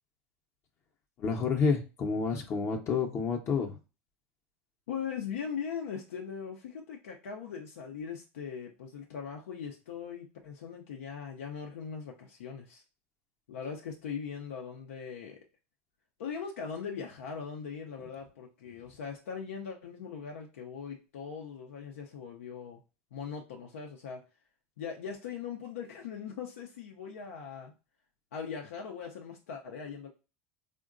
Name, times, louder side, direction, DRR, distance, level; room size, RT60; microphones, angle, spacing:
voice 1, 1.2-3.8, left 5 dB, 40° left, 2 dB, 0.6 m, -29 dB
voice 2, 4.9-12.8 13.5-15.4 16.2-22.8 23.1-24.2 24.8-27.7 28.3-30.1, left 6 dB, 85° left, 1 dB, 0.5 m, -40 dB
3.7 x 2.1 x 2.4 m, 0.31 s
hypercardioid pair, 105°, 7 cm